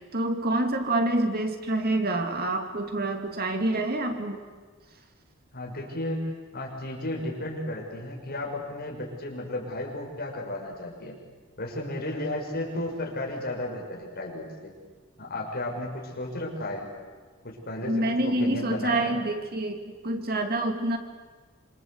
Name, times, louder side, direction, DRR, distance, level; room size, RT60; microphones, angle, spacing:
voice 1, 0.0-4.4 17.8-21.0, right 1 dB, 50° right, 5 dB, 2.6 m, -27 dB
voice 2, 5.5-6.2 6.5-11.2 11.6-14.7 15.2-16.9 17.4-19.2, left 1 dB, 50° left, 0 dB, 6.4 m, -34 dB
26.5 x 26.5 x 8.1 m, 1.4 s
head